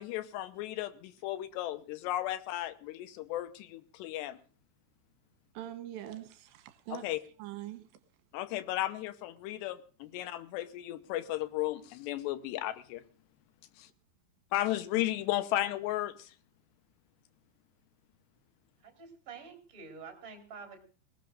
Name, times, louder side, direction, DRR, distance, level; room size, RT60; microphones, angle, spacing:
voice 1, 0.0-4.4 6.9-7.2 8.3-13.0 13.8-13.9 14.5-16.3, left 15 dB, 75° left, 12 dB, 2.7 m, -34 dB
voice 2, 5.5-7.1 7.4-7.9, right 12 dB, 75° right, 10 dB, 3.1 m, -43 dB
voice 3, 18.8-20.8, right 5 dB, 20° right, 2 dB, 3.7 m, -48 dB
20.0 x 18.5 x 2.5 m, 0.39 s
omnidirectional pair, 5.5 m